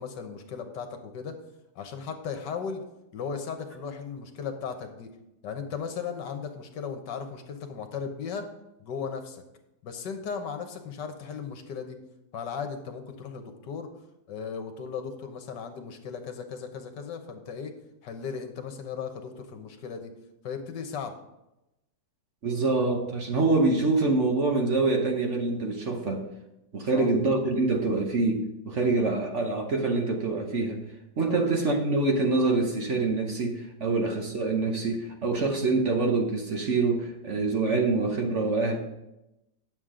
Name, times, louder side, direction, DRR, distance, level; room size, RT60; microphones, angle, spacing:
voice 1, 0.0-1.3 1.8-2.8 3.1-5.1 5.4-8.5 8.8-9.4 9.8-12.0 12.3-13.9 14.3-17.7 18.0-20.1 20.4-21.2 26.9-27.1 28.8-28.9 31.3-31.4, left 6 dB, 75° left, 6 dB, 1.6 m, -36 dB
voice 2, 22.4-26.2 26.7-30.8 31.2-38.8, right 3 dB, 50° right, 2 dB, 1.1 m, -25 dB
9.6 x 7.2 x 3.7 m, 0.91 s
omnidirectional pair, 1.9 m